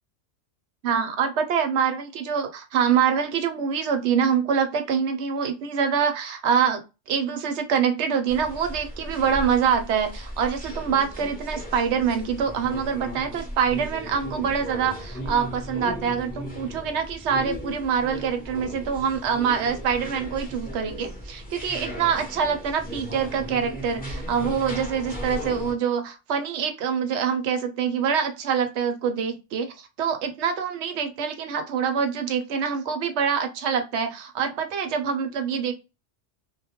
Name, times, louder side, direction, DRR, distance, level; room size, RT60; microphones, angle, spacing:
voice 1, 0.8-6.8 7.1-35.7, right 7 dB, 70° right, 6 dB, 0.8 m, -25 dB
sound 1, 8.3-25.7, equal, 10° left, 0.5 m, -36 dB
2.2 x 2.1 x 2.7 m, 0.28 s
omnidirectional pair, 1.3 m